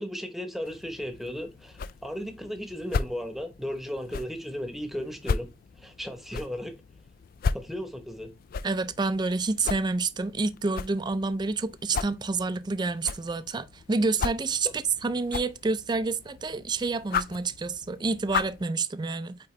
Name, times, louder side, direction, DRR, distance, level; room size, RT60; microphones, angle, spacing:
voice 1, 0.0-5.5 5.8-6.8 7.5-8.3, equal, ahead, 1.0 m, -35 dB
sound 1, 0.6-18.7, left 5 dB, 50° left, 0.3 m, -36 dB
voice 2, 8.6-19.4, right 3 dB, 25° right, 0.4 m, -28 dB
8.7 x 3.8 x 3.2 m
head